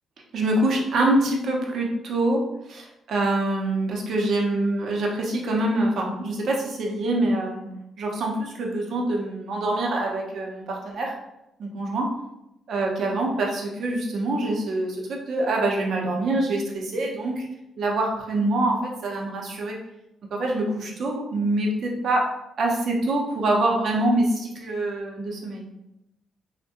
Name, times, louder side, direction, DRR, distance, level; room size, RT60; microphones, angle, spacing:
voice 1, 0.3-7.7 8.0-11.1 11.6-12.1 12.7-17.5 17.8-19.8 20.3-22.3 22.6-25.6, right 2 dB, 65° right, 0 dB, 0.6 m, -25 dB
3.3 x 2.1 x 2.7 m, 0.88 s
supercardioid pair, 55°, 0 cm